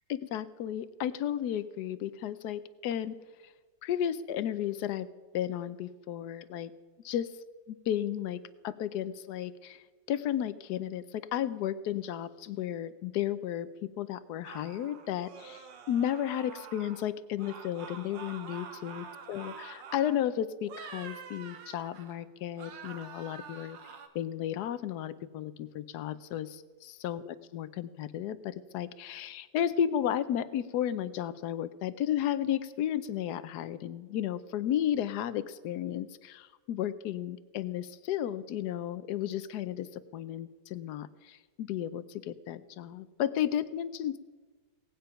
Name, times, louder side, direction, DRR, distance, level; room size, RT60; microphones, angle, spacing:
voice 1, 0.1-3.2 3.8-5.1 5.3-6.7 7.0-7.3 7.9-23.8 24.1-44.2, left 10 dB, 70° left, 15 dB, 1.1 m, -33 dB
sound 1, 14.4-17.1 17.4-20.3 20.6-22.2 22.6-24.1, right 6 dB, 90° right, 1.8 m, -47 dB
17.5 x 9.0 x 5.7 m, 1.4 s
omnidirectional pair, 1.9 m